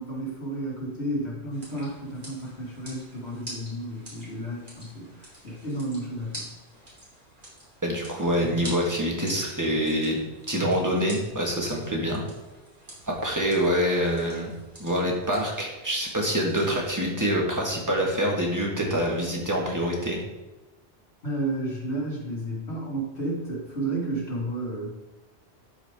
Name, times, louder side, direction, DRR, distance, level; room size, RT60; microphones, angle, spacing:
voice 1, 0.0-6.5 21.2-24.9, right 1 dB, 70° left, -4 dB, 2.6 m, -32 dB
sound 1, 1.5-17.1, right 1 dB, 45° right, 3.1 m, -46 dB
voice 2, 7.8-10.2 10.5-12.2 13.1-14.5 14.8-20.2, equal, 15° right, -2 dB, 1.7 m, -26 dB
12.0 x 4.9 x 3.6 m, 1.1 s
omnidirectional pair, 1.1 m